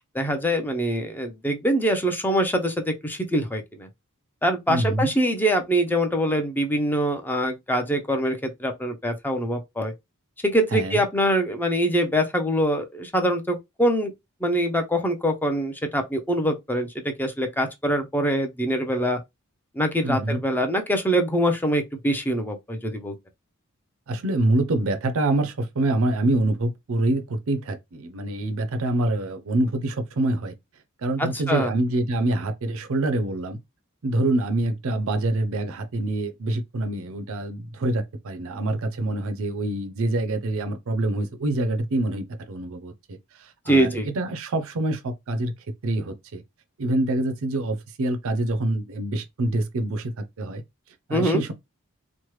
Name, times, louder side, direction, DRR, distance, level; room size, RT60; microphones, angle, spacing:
voice 1, 0.1-3.9 4.4-9.9 10.4-14.1 14.4-19.2 19.8-23.1 31.2-31.7 43.7-44.1 51.1-51.4, equal, 10° left, 0.5 m, -24 dB
voice 2, 4.7-5.1 10.7-11.0 20.0-20.4 24.1-30.5 31.0-33.6 34.0-45.5 45.8-46.4 46.8-50.6 51.1-51.5, right 2 dB, 65° right, 0.5 m, -26 dB
3.1 x 2.1 x 3.0 m
head